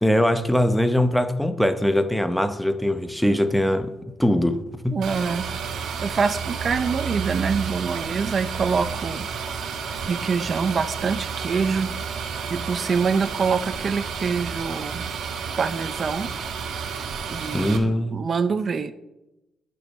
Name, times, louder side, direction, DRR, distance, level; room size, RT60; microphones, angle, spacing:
voice 1, 0.0-5.0 17.5-18.2, left 1 dB, ahead, 0.8 m, -22 dB
voice 2, 4.9-5.5 6.0-9.3 10.1-11.9 12.5-15.0 15.6-16.3 17.3-18.9, right 5 dB, 45° right, 0.5 m, -25 dB
sound 1, 5.0-17.8, right 6 dB, 70° right, 1.6 m, -31 dB
9.8 x 6.3 x 6.1 m
cardioid pair, 90°, 0 cm